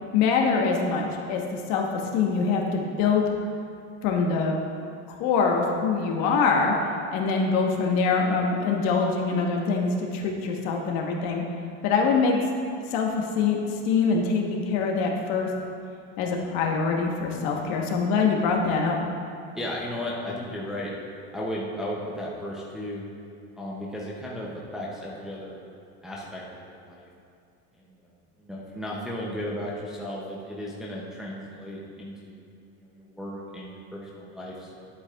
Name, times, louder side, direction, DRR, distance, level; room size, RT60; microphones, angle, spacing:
voice 1, 0.1-1.8 2.1-3.3 4.0-4.5 5.1-6.7 7.1-11.4 11.8-12.4 12.9-13.6 13.9-15.5 16.2-19.0, left 5 dB, 55° left, 1 dB, 1.2 m, -24 dB
voice 2, 19.6-20.9 21.3-23.0 23.5-25.6 26.0-27.1 28.0-28.1 28.4-32.5 32.7-34.9, left 1 dB, ahead, -5 dB, 0.5 m, -35 dB
11.5 x 8.1 x 2.4 m, 2.4 s
cardioid pair, 170°, 32 cm